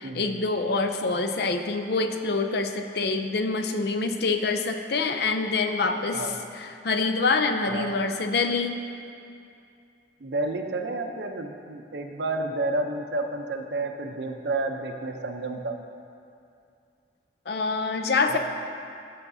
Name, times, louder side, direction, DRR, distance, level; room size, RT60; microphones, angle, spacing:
voice 1, 0.0-8.8 17.5-18.4, left 3 dB, 65° left, 7 dB, 0.5 m, -26 dB
voice 2, 7.7-8.0 10.2-15.7 18.3-18.4, right 2 dB, 70° right, 4 dB, 0.6 m, -30 dB
14.5 x 5.8 x 2.7 m, 2.5 s
head